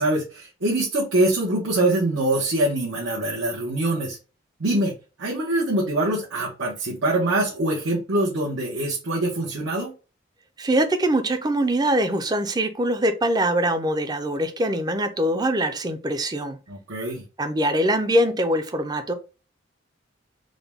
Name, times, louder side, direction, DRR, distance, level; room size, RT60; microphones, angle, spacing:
voice 1, 0.0-4.2 4.6-4.9 5.2-9.9 16.7-17.2, right 1 dB, 85° right, -5 dB, 1.1 m, -24 dB
voice 2, 10.6-16.6 17.4-19.1, right 1 dB, 20° right, 8 dB, 0.5 m, -23 dB
3.8 x 2.2 x 3.5 m, 0.32 s
head